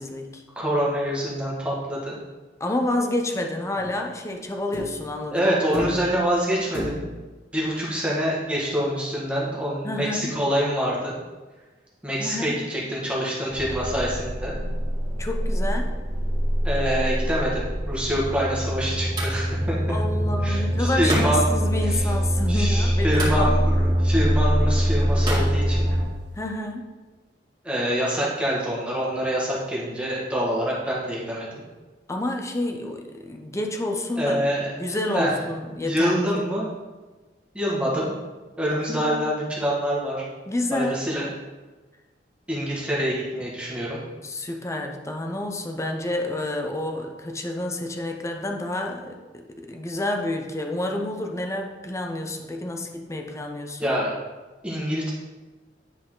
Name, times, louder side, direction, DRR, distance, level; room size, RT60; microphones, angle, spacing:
voice 1, 0.0-0.4 2.6-6.1 9.8-10.3 12.2-12.6 15.2-15.9 19.9-23.5 26.4-26.9 32.1-36.4 38.9-39.1 40.5-41.0 44.2-53.9, left 1 dB, 15° left, 3 dB, 0.7 m, -29 dB
voice 2, 0.5-2.2 5.3-7.0 7.5-11.1 12.0-14.5 16.6-19.9 20.4-21.4 21.9-22.0 22.5-25.9 27.6-31.6 34.2-34.7 35.1-35.3 35.8-36.7 37.5-38.1 38.6-40.2 40.7-41.2 42.5-44.0 53.8-54.1 54.6-55.1, equal, 5° right, -6 dB, 1.7 m, -26 dB
sound 1, 3.8-4.1 4.7-5.1 5.7-6.3 6.7-7.3 8.6-8.7, equal, 55° left, 2.3 m, -34 dB
sound 2, 13.5-26.0, equal, 45° right, 1.3 m, -24 dB
sound 3, 17.9-26.5, right 1 dB, 25° right, 2.3 m, -36 dB
10.0 x 4.2 x 3.8 m, 1.3 s
head